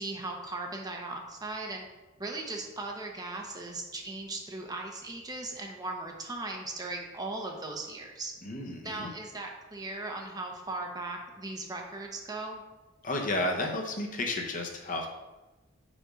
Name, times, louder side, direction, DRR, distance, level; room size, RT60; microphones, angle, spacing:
voice 1, 0.0-1.8 2.2-8.3 8.8-12.6, right 2 dB, 20° right, 1 dB, 0.8 m, -38 dB
voice 2, 8.4-9.1 13.0-15.1, left 2 dB, 40° left, 2 dB, 0.9 m, -32 dB
5.1 x 5.1 x 5.1 m, 1.1 s
head